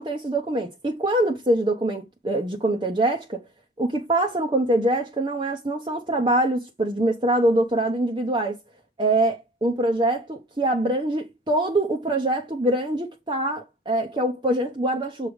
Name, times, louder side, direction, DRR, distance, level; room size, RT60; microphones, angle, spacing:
voice 1, 0.0-3.4 3.8-8.6 9.0-15.3, right 1 dB, 25° right, 0.8 m, -24 dB
7.4 x 3.2 x 5.1 m
head